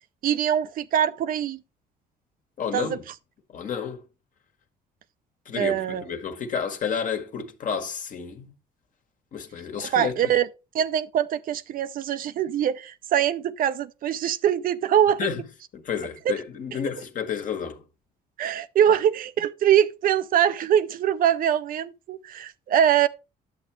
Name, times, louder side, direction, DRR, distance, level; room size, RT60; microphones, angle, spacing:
voice 1, 0.2-1.6 2.7-3.0 5.6-6.0 9.8-10.5 10.7-15.3 16.3-16.4 18.4-23.1, right 10 dB, 55° right, 0.6 m, -23 dB
voice 2, 2.6-3.0 3.5-4.0 5.4-8.5 9.3-10.3 15.2-15.5 15.7-17.8, left 7 dB, 50° left, 1.6 m, -31 dB
10.5 x 7.5 x 3.3 m
cardioid pair, 110°, 17 cm